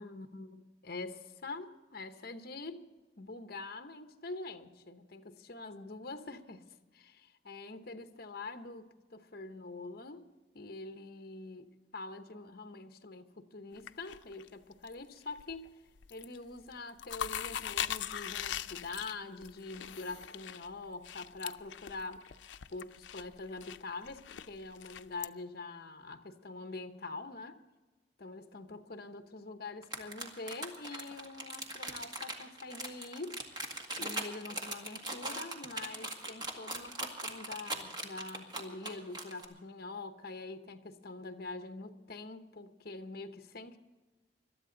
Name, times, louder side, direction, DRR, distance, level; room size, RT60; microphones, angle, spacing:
voice 1, 0.0-2.9 3.2-6.7 6.9-10.2 10.5-15.7 16.1-22.3 22.7-27.6 28.2-33.4 34.0-43.8, left 3 dB, 55° left, 1.1 m, -45 dB
sound 1, 13.8-14.9 15.3-15.7 16.0-16.4 16.7-25.3, left 10 dB, 80° left, 0.5 m, -41 dB
sound 2, 29.8-39.4, right 1 dB, 25° right, 1.9 m, -40 dB
22.0 x 13.0 x 3.9 m
head